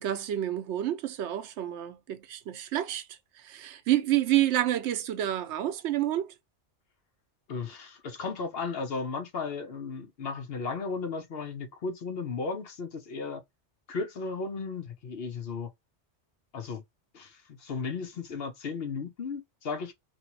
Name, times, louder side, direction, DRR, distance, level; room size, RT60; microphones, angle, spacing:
voice 1, 0.0-6.3, right 13 dB, 80° right, 0.9 m, -29 dB
voice 2, 7.5-13.4 13.9-15.7 16.5-16.8 17.1-19.9, left 4 dB, 60° left, 0.9 m, -35 dB
2.9 x 2.6 x 2.7 m
omnidirectional pair, 1.2 m